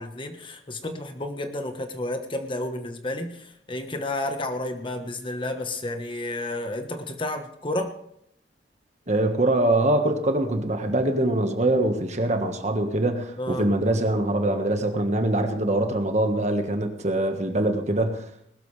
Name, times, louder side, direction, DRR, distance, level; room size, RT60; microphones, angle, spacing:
voice 1, 0.0-7.9 13.4-13.7, left 1 dB, 30° left, 6 dB, 1.2 m, -31 dB
voice 2, 9.1-18.2, right 1 dB, 40° right, 6 dB, 1.5 m, -23 dB
20.0 x 13.0 x 3.3 m, 0.72 s
head